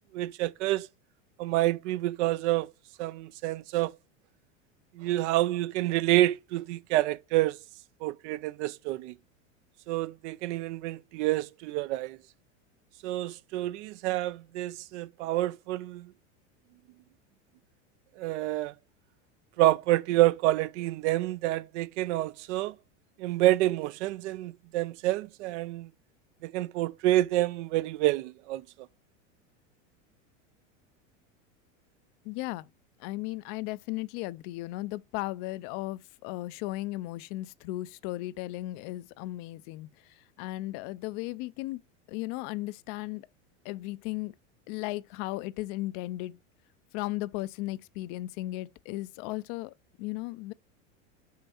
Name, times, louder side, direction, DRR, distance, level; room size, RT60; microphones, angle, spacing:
voice 1, 0.1-0.9 1.4-2.7 3.0-3.9 4.9-7.6 8.0-9.2 9.9-12.2 13.0-16.1 18.2-18.7 19.6-22.8 23.2-25.9 26.4-28.6, right 16 dB, 65° right, 0.6 m, -28 dB
voice 2, 32.2-32.7 33.0-41.8 42.1-43.3 43.6-44.3 44.7-46.4 46.9-50.5, left 18 dB, 50° left, 0.5 m, -36 dB
6.6 x 5.7 x 4.2 m
supercardioid pair, 125°, 37 cm